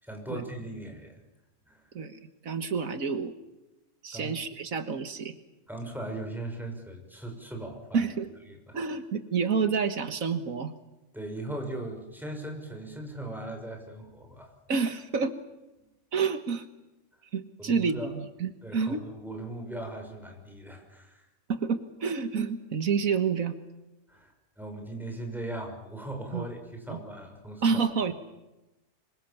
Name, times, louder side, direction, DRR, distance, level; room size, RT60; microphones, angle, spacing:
voice 1, 0.0-1.2 1.7-1.8 4.1-4.4 5.7-8.0 8.7-8.8 11.1-14.5 17.6-18.1 18.6-21.3 24.1-27.8, right 1 dB, ahead, 3 dB, 6.3 m, -39 dB
voice 2, 1.9-3.3 4.0-5.3 7.9-8.3 8.7-10.7 14.7-15.3 16.1-16.7 17.3-19.0 21.5-23.5 26.3-26.5 26.9-27.0 27.6-28.1, right 5 dB, 85° right, 9 dB, 1.9 m, -29 dB
26.5 x 24.0 x 7.2 m, 0.99 s
omnidirectional pair, 1.4 m